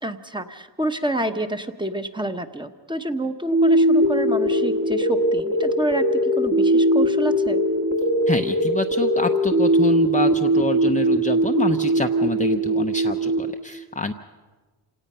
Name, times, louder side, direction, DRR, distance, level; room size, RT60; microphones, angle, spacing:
voice 1, 0.0-7.6, right 1 dB, 10° right, 8 dB, 0.9 m, -28 dB
sound 1, 3.5-13.5, right 1 dB, 40° right, 1.5 m, -20 dB
voice 2, 8.3-14.1, left 4 dB, 15° left, 4 dB, 0.6 m, -27 dB
27.5 x 18.0 x 5.5 m, 1.3 s
cardioid pair, 120°, 44 cm